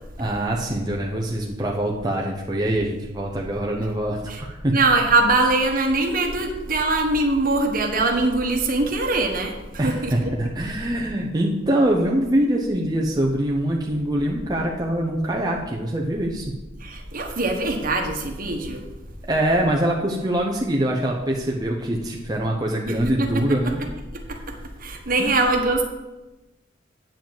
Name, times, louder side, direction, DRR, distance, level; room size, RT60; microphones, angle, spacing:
voice 1, 0.2-4.8 9.8-16.5 19.3-23.8 25.2-25.4, right 1 dB, 20° right, -1 dB, 0.8 m, -24 dB
voice 2, 4.7-10.3 16.8-18.8 22.9-23.4 24.1-25.8, right 2 dB, 45° right, 3 dB, 1.4 m, -22 dB
8.9 x 4.8 x 7.7 m, 1.1 s
head